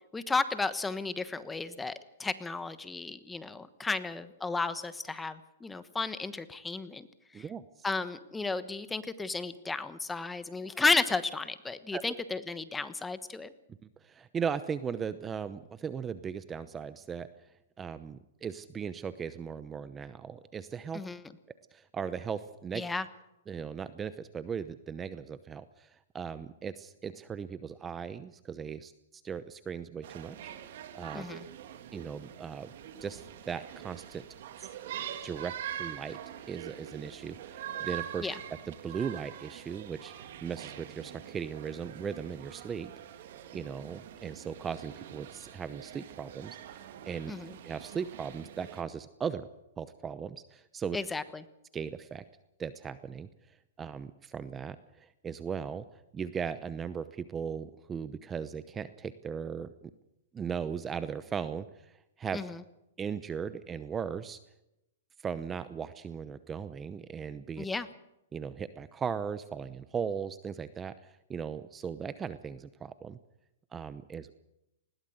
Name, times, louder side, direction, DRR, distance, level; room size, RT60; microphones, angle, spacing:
voice 1, 0.1-7.1 7.3-7.5 7.8-13.5 20.9-21.2 22.7-23.0 31.1-31.4 38.2-38.4 47.3-47.6 50.9-51.4 62.3-62.6 67.6-67.9, left 3 dB, 10° left, 13 dB, 1.2 m, -33 dB
voice 2, 14.0-17.3 17.8-21.0 21.7-22.8 23.5-30.4 30.6-31.3 31.9-32.7 33.0-34.2 34.6-34.7 35.2-36.2 36.5-38.3 38.7-42.9 43.5-47.3 47.6-49.5 49.8-51.0 51.7-52.2 52.6-53.3 53.8-55.8 56.1-59.7 60.3-62.4 63.0-64.4 65.2-67.7 68.3-73.2 73.7-74.3, right 7 dB, 15° right, 14 dB, 0.8 m, -38 dB
sound 1, 30.0-48.8, right 10 dB, 60° right, 2.4 m, -44 dB
20.5 x 17.5 x 7.9 m, 0.86 s
hypercardioid pair, 140°, 0 cm